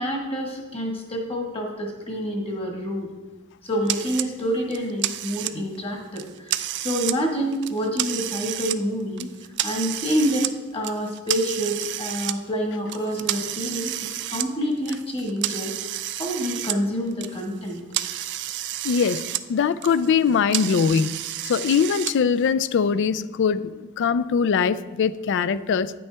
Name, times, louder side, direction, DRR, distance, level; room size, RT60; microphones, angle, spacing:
voice 1, 0.0-3.1 3.6-9.3 9.6-17.8, equal, 25° left, 1 dB, 1.6 m, -27 dB
sound 1, 3.9-4.3 4.7-5.8 6.2-7.2 7.5-8.8 9.2-10.5 10.8-12.3 12.9-16.8 17.1-19.4 19.7-22.1, right 13 dB, 55° right, 0.4 m, -30 dB
voice 2, 18.8-21.1 21.4-25.9, left 6 dB, 60° left, 16 dB, 0.3 m, -22 dB
9.6 x 8.4 x 3.4 m, 1.2 s
head